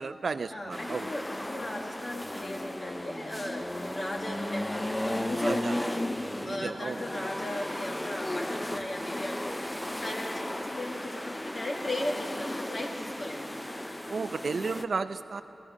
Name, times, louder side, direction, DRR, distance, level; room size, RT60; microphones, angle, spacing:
voice 1, 0.0-1.1 5.4-5.8 6.4-7.0 14.1-15.4, right 4 dB, 65° right, 11 dB, 0.3 m, -33 dB
voice 2, 0.5-6.1 6.4-9.6 9.9-13.5, left 1 dB, 45° left, 1 dB, 1.6 m, -37 dB
sound 1, 0.7-14.8, left 1 dB, 15° left, 0.4 m, -35 dB
14.5 x 13.5 x 5.5 m, 3.0 s
cardioid pair, 60°, 0 cm